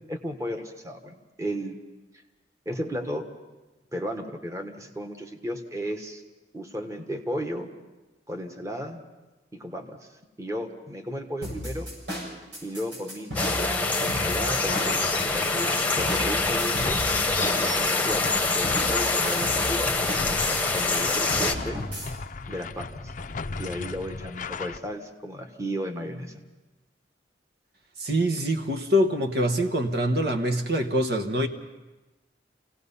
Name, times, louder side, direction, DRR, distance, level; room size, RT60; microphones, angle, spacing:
voice 1, 0.1-1.8 2.6-3.2 3.9-6.2 6.5-7.7 8.3-9.0 9.5-10.0 10.4-11.9 12.6-17.0 17.6-20.0 20.7-21.8 22.5-23.1 23.6-26.3, equal, 20° right, 4 dB, 1.4 m, -34 dB
sound 1, 11.4-22.1, equal, 85° right, 7.8 m, -34 dB
sound 2, 13.3-21.5, left 3 dB, 10° left, 1.1 m, -25 dB
sound 3, 14.1-24.8, left 4 dB, 45° left, 0.6 m, -37 dB
voice 2, 28.0-31.5, equal, 60° right, 4 dB, 1.3 m, -24 dB
28.0 x 17.5 x 5.6 m, 1.1 s
head